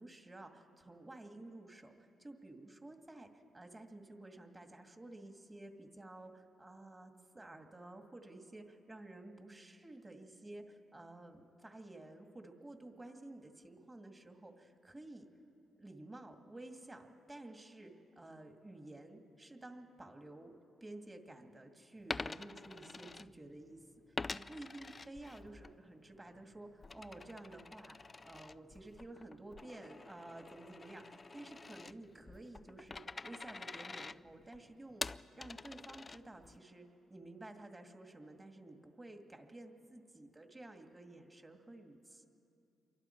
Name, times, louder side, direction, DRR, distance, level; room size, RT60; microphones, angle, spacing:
voice 1, 0.0-3.3 3.5-15.3 15.8-20.5 20.8-35.0 35.3-42.2, right 2 dB, 20° right, 4 dB, 2.2 m, -52 dB
Coin (dropping), 22.0-23.7 24.1-25.7 26.1-36.6, left 3 dB, 30° left, 0.4 m, -47 dB
27.5 x 23.5 x 4.6 m, 2.7 s
cardioid pair, 75°, 0 cm